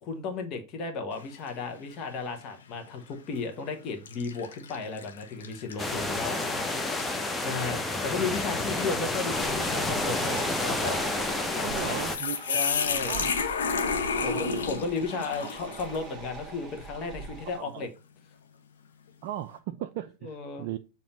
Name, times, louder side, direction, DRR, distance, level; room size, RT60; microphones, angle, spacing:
voice 1, 0.0-6.4 7.4-11.0 11.5-12.0 12.5-13.2 14.2-17.9 20.2-20.7, left 4 dB, 35° left, 1.1 m, -34 dB
sound 1, 1.1-1.6 2.1-2.3 3.2-3.4 4.1-16.1, left 5 dB, 65° left, 0.8 m, -33 dB
sound 2, 5.8-12.2, left 2 dB, 10° left, 0.7 m, -30 dB
sound 3, 9.3-17.6, right 4 dB, 10° right, 1.5 m, -41 dB
voice 2, 11.6-12.6 13.1-13.3 14.1-14.7 17.6-17.9 19.2-20.8, right 12 dB, 45° right, 0.3 m, -37 dB
7.0 x 2.8 x 5.0 m
figure-of-eight pair, 90°, 0 cm